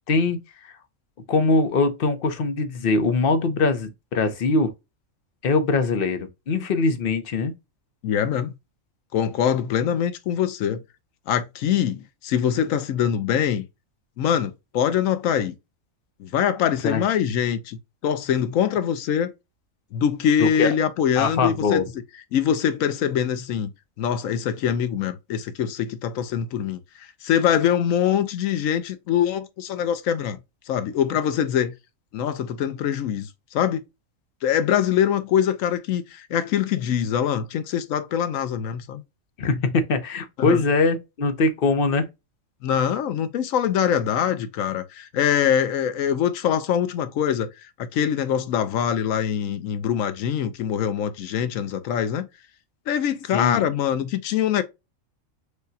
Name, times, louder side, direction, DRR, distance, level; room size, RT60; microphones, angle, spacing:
voice 1, 0.1-0.4 0.7-0.8 1.3-4.7 5.4-7.5 16.8-17.0 20.4-20.7 21.2-21.9 39.4-42.1 53.3-53.6, left 3 dB, 50° left, 0.9 m, -22 dB
voice 2, 8.0-8.5 9.1-10.8 11.3-13.7 14.2-15.6 16.2-19.3 19.9-21.8 22.3-23.7 24.0-30.4 30.7-31.7 32.1-33.8 34.4-39.0 40.4-40.6 42.6-47.5 47.8-52.3 52.9-54.6, left 9 dB, 80° left, 1.1 m, -23 dB
6.5 x 2.2 x 2.6 m
omnidirectional pair, 1.4 m